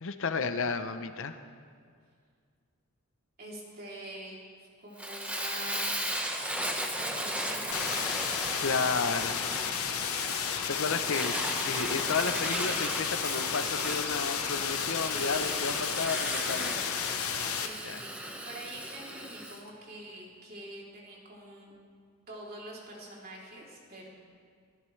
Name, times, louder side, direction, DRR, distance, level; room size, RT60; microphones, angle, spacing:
voice 1, 0.0-1.4 8.6-9.3 10.7-11.4 11.6-16.8 17.8-18.0, left 4 dB, 65° left, 9 dB, 0.8 m, -32 dB
voice 2, 3.4-4.4 4.8-6.1 7.0-7.7 14.9-15.5 17.5-21.7 22.3-24.1, right 1 dB, 45° right, -4 dB, 3.2 m, -45 dB
Fire, 5.0-19.6, equal, 5° right, 1.2 m, -36 dB
sound 1, 7.7-17.7, left 8 dB, 90° left, 1.0 m, -32 dB
24.5 x 14.0 x 3.3 m, 2.1 s
head